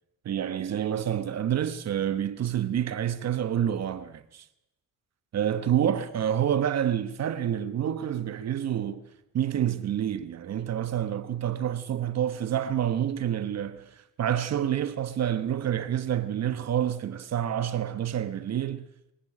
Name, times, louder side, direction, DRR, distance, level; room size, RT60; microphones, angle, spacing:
voice 1, 0.2-4.4 5.3-9.0 9.3-13.9 14.2-18.9, right 10 dB, 60° right, 1.2 m, -28 dB
23.0 x 11.5 x 9.9 m
cardioid pair, 90°, 30 cm